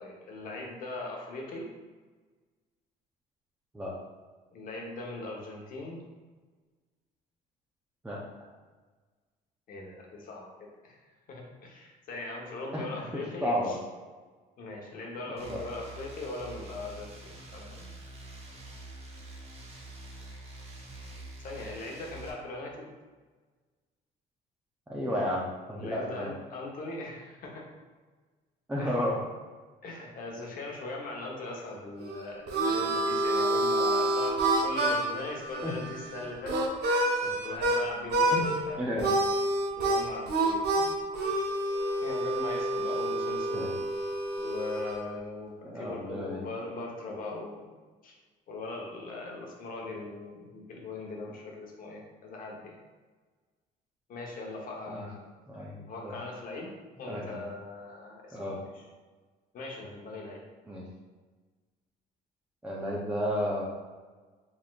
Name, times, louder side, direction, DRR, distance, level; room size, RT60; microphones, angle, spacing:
voice 1, 0.0-1.7 4.5-6.0 9.7-11.0 11.3-13.8 14.6-17.9 21.4-22.9 25.8-27.7 28.8-29.0 29.8-34.4 34.6-36.6 36.9-39.1 39.8-40.6 42.0-43.7 44.4-47.7 48.0-48.1 48.5-52.8 54.1-55.3 55.9-56.7 57.0-58.9 59.5-60.4, left 2 dB, 55° left, -1 dB, 1.0 m, -40 dB
voice 2, 13.1-13.8 15.5-15.6 24.9-25.4 25.7-26.3 28.7-29.2 35.6-35.7 38.3-39.1 43.5-43.7 45.6-46.4 54.9-55.0 55.5-56.1 57.1-57.4 58.3-58.6 60.7-60.8 62.6-63.6, equal, 10° right, -6 dB, 0.6 m, -32 dB
sound 1, 15.4-22.3, right 2 dB, 35° right, 0.9 m, -46 dB
Harmonica, 32.0-37.8 38.1-38.6 39.0-45.0, right 1 dB, 75° right, 0.7 m, -28 dB
4.1 x 3.5 x 2.4 m, 1.4 s
cardioid pair, 110°, 17 cm